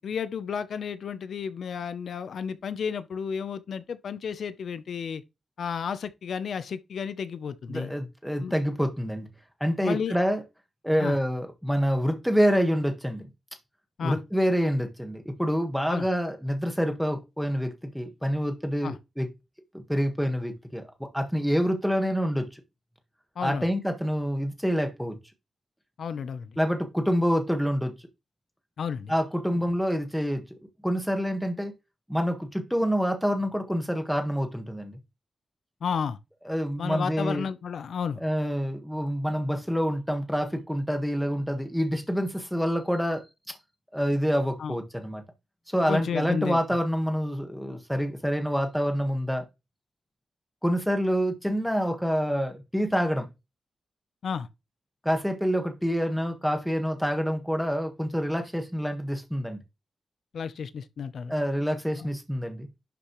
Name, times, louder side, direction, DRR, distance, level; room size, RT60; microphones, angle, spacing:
voice 1, 0.0-5.2 5.6-7.9 8.4-8.5 9.8-10.2 11.0-11.2 14.0-14.2 15.9-16.1 18.8-19.0 23.4-23.6 26.0-26.6 28.8-29.1 35.8-36.2 36.8-38.2 44.6-44.8 45.9-46.6 54.2-54.5 60.3-61.3, left 6 dB, 70° left, 0.7 m, -32 dB
voice 2, 7.7-9.3 9.6-10.4 10.8-13.3 14.0-19.3 19.7-22.6 23.4-25.2 26.6-27.9 29.1-30.4 30.8-31.7 32.1-35.0 36.4-37.5 38.2-43.2 43.9-45.2 45.7-49.4 50.6-53.3 55.0-59.6 61.3-62.7, equal, ahead, 1.6 m, -27 dB
11.5 x 6.7 x 3.1 m
wide cardioid pair, 155°, 0 cm